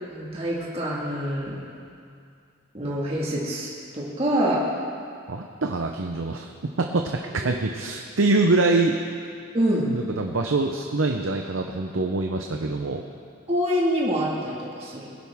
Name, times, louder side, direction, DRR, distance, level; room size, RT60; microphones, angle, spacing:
voice 1, 0.1-1.6 2.7-4.7 9.5-9.9 13.5-15.1, equal, 30° right, -5 dB, 2.0 m, -26 dB
voice 2, 5.3-6.5 6.8-9.0 9.9-13.0, right 3 dB, 70° right, 3 dB, 0.7 m, -24 dB
21.0 x 10.5 x 3.6 m, 2.4 s
head